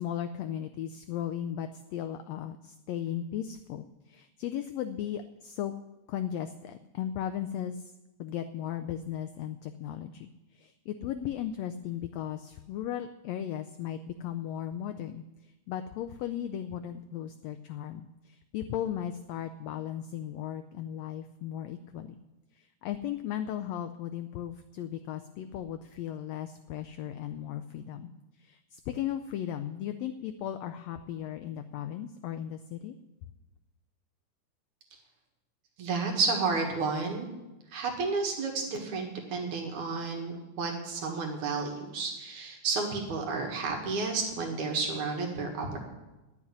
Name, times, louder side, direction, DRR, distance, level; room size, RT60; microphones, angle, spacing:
voice 1, 0.0-5.7 6.1-7.9 8.2-22.2 22.5-28.1 28.4-32.9, left 10 dB, 80° left, 8 dB, 1.5 m, -36 dB
voice 2, 35.8-37.3 37.7-45.8, right 4 dB, 75° right, 2 dB, 3.0 m, -31 dB
11.5 x 7.2 x 9.6 m, 1.0 s
omnidirectional pair, 3.5 m